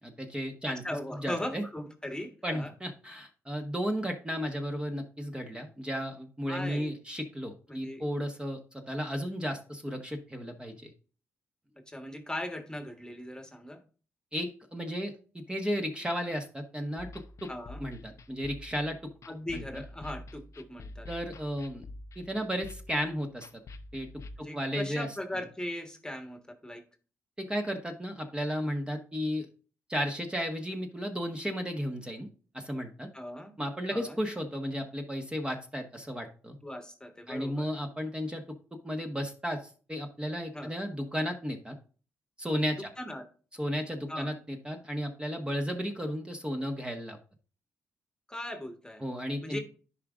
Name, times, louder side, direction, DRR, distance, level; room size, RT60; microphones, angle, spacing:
voice 1, 0.0-0.8 1.2-1.6 2.4-10.9 14.3-15.1 15.5-17.1 17.4-17.5 17.8-19.1 19.5-19.6 21.1-21.8 22.2-23.5 23.9-24.1 24.5-25.1 27.4-29.5 29.9-32.3 32.5-33.1 33.6-36.6 37.3-38.4 38.8-41.7 42.4-42.9 43.6-47.2 49.0-49.6, equal, 15° right, 3 dB, 1.3 m, -34 dB
voice 2, 0.6-2.7 6.5-6.9 7.7-8.0 11.9-13.8 17.5-17.8 19.3-21.1 24.4-26.8 33.1-33.5 33.9-34.2 36.6-37.7 40.5-40.7 43.0-43.3 44.1-44.3 48.3-49.0 49.4-49.6, left 1 dB, 10° left, 5 dB, 1.5 m, -39 dB
sound 1, 17.0-24.4, left 2 dB, 55° left, 0.7 m, -47 dB
10.5 x 4.9 x 2.5 m, 0.38 s
supercardioid pair, 50°, 6 cm